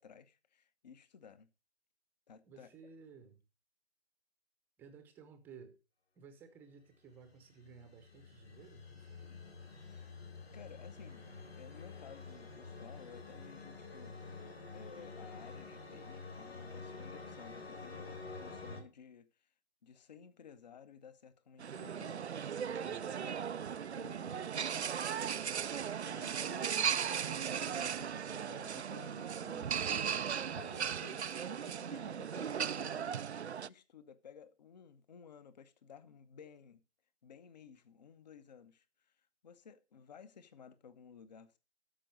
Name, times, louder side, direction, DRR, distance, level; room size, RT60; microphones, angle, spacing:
voice 1, 0.0-1.5 2.3-2.7 9.9-10.1 10.5-11.2 11.5-14.4 14.7-19.5 19.8-22.5 22.8-23.4 24.0-24.9 25.7-29.9 30.5-33.1 33.7-36.8 37.2-41.6, left 7 dB, 40° left, 1.0 m, -56 dB
voice 2, 2.5-3.4 4.8-5.8 6.2-9.4, right 5 dB, 5° right, 0.8 m, -56 dB
sound 1, 7.2-18.8, left 4 dB, 65° left, 4.4 m, -49 dB
sound 2, 21.6-33.7, right 8 dB, 80° right, 0.5 m, -37 dB
13.0 x 5.3 x 6.4 m
figure-of-eight pair, 135°, 33 cm